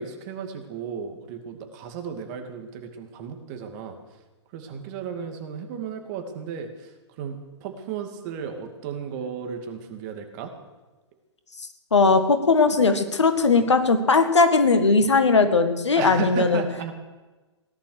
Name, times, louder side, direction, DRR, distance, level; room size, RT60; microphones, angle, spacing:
voice 1, 0.0-4.0 4.5-6.9 7.2-10.5 16.0-16.9, right 7 dB, 40° right, 5 dB, 2.4 m, -34 dB
voice 2, 11.9-16.6, left 4 dB, 80° left, 8 dB, 1.7 m, -19 dB
17.5 x 11.5 x 6.6 m, 1.2 s
figure-of-eight pair, 110°, 15 cm